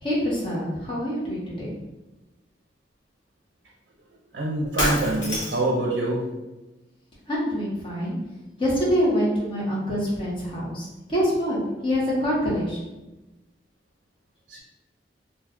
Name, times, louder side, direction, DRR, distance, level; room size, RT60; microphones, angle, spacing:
voice 1, 0.0-1.7 7.3-8.2 8.6-12.9, equal, 30° left, -6 dB, 0.9 m, -25 dB
voice 2, 4.3-6.2 14.5-14.6, right 2 dB, 65° right, -2 dB, 0.5 m, -25 dB
Shatter, 4.8-5.8, left 1 dB, 90° left, 0.9 m, -27 dB
2.5 x 2.2 x 3.6 m, 1.1 s
head